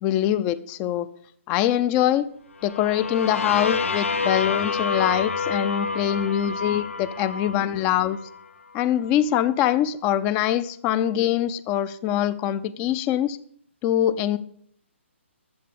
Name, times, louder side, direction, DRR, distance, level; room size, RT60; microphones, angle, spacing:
voice 1, 0.0-1.1 1.5-2.3 2.6-8.2 8.7-13.4 13.8-14.4, left 11 dB, 20° left, 16 dB, 0.6 m, -23 dB
sound 1, 2.6-8.4, left 4 dB, 80° left, 1.5 m, -28 dB
13.5 x 7.6 x 6.9 m, 0.63 s
hypercardioid pair, 145°, 7 cm